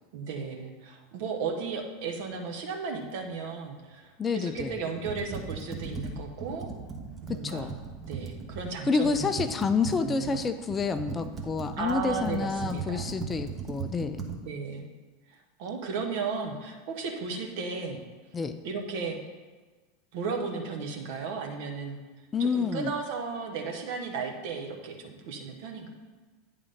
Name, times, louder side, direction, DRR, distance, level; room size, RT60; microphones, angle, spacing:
voice 1, 0.1-6.7 7.2-7.7 8.0-9.4 10.0-10.4 11.8-13.1 14.3-14.9 15.3-18.0 18.6-19.2 20.1-22.0 22.4-25.9, right 5 dB, 55° right, 3 dB, 1.0 m, -35 dB
voice 2, 4.2-4.8 7.3-7.8 8.9-14.3 18.3-18.6 22.3-22.9, left 5 dB, 20° left, 10 dB, 0.4 m, -28 dB
Computer keyboard, 4.6-8.7 9.0-14.4, right 5 dB, 25° right, 1.0 m, -38 dB
9.5 x 3.7 x 5.1 m, 1.3 s
figure-of-eight pair, 80°, 0 cm